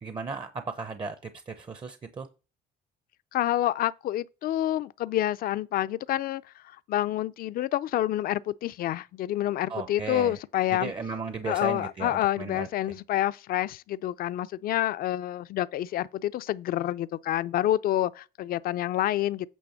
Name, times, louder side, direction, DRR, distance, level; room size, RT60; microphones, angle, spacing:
voice 1, 0.0-2.3 9.7-10.3 10.7-12.7, right 4 dB, 30° right, 0.7 m, -35 dB
voice 2, 3.3-10.9 11.4-19.5, left 13 dB, 60° left, 0.5 m, -28 dB
8.5 x 3.4 x 6.4 m
cardioid pair, 110°, 17 cm